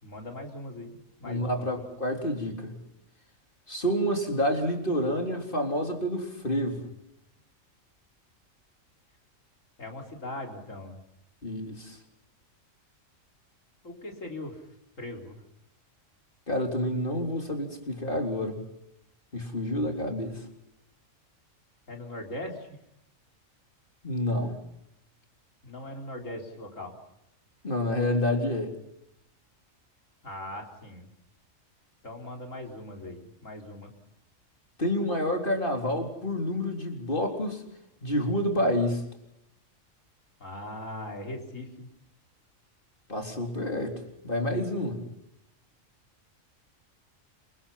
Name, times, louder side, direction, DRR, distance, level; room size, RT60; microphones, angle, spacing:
voice 1, 0.0-1.6 9.8-11.0 13.8-14.6 15.0-15.4 21.9-22.8 25.6-27.0 30.2-31.1 32.0-33.9 40.4-41.9, left 1 dB, 70° left, 2 dB, 4.5 m, -40 dB
voice 2, 1.2-2.8 3.7-6.9 11.4-12.0 16.5-18.6 19.3-20.4 24.0-24.7 27.6-28.7 34.8-37.6 38.0-39.1 43.1-45.1, left 1 dB, 40° left, 3 dB, 4.0 m, -29 dB
28.0 x 25.0 x 5.8 m, 0.82 s
omnidirectional pair, 1.4 m